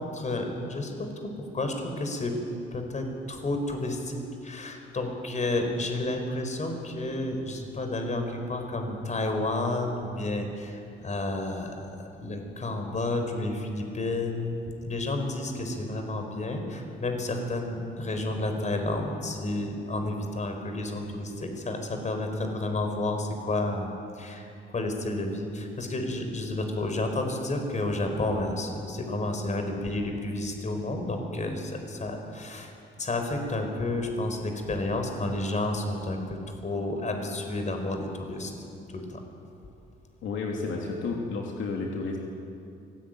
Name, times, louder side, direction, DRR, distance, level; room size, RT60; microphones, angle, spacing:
voice 1, 0.0-2.4 2.7-32.7 33.0-38.5 38.9-39.2, left 2 dB, 35° left, 5 dB, 4.8 m, -31 dB
voice 2, 40.2-42.2, left 3 dB, 75° left, -1 dB, 3.1 m, -31 dB
24.5 x 17.5 x 9.3 m, 2.6 s
cardioid pair, 90°, 20 cm